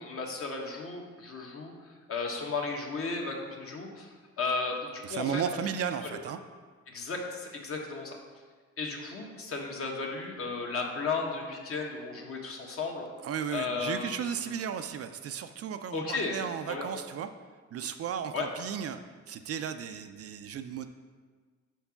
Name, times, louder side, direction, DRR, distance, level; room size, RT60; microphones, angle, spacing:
voice 1, 0.0-5.4 6.9-8.2 8.8-13.1 13.5-14.6 15.9-16.3 16.7-16.9 18.3-18.5, left 4 dB, 45° left, 1 dB, 1.1 m, -34 dB
voice 2, 5.0-6.4 13.2-17.3 17.7-19.0 19.3-20.9, right 8 dB, 50° right, 9 dB, 0.4 m, -35 dB
4.6 x 4.5 x 5.7 m, 1.5 s
cardioid pair, 90°, 30 cm